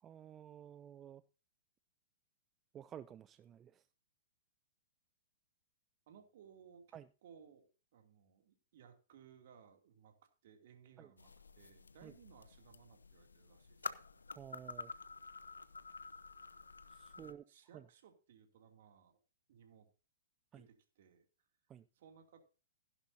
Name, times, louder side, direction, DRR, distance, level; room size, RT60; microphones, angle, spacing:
voice 1, 0.0-1.2 2.7-3.8 6.9-7.1 11.0-11.1 12.0-12.1 14.4-14.9 16.9-17.4 17.7-17.8 20.5-20.7 21.7-21.8, right 9 dB, 25° right, 14 dB, 0.5 m, -52 dB
voice 2, 6.1-7.6 7.9-10.2 10.4-14.2 17.2-19.2 19.5-19.9 20.5-21.3 21.9-22.4, right 7 dB, 60° right, 5 dB, 2.7 m, -62 dB
sound 1, 11.2-17.3, left 4 dB, 90° left, 0.8 m, -50 dB
15.5 x 11.0 x 2.8 m, 0.34 s
hypercardioid pair, 115°, 0 cm